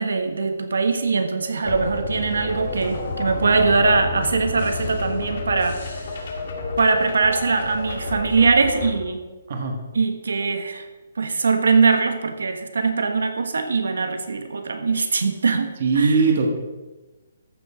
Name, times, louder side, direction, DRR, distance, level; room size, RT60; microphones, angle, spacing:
voice 1, 0.0-6.2 6.8-9.2 9.9-10.9 11.1-16.3, right 4 dB, 90° right, 7 dB, 1.2 m, -22 dB
sound 1, 1.6-8.9, left 2 dB, 40° left, 2.0 m, -30 dB
voice 2, 15.8-16.5, right 4 dB, 35° right, 3 dB, 1.5 m, -19 dB
14.0 x 6.6 x 5.0 m, 1.2 s
hypercardioid pair, 180°, 0 cm